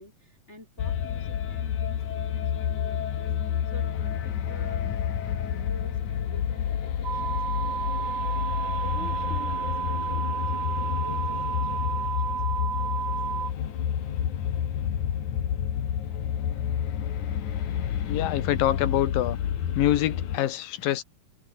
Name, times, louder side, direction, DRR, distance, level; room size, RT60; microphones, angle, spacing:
voice 1, 0.0-3.3 3.7-4.9 5.2-8.5 8.8-13.4, left 1 dB, 20° left, 4.6 m, -48 dB
sound 1, 0.8-20.4, left 9 dB, 60° left, 3.3 m, -29 dB
sound 2, 7.0-13.5, right 7 dB, 55° right, 1.1 m, -31 dB
voice 2, 18.1-19.4 19.7-21.0, left 13 dB, 80° left, 3.0 m, -25 dB
omnidirectional pair, 4.1 m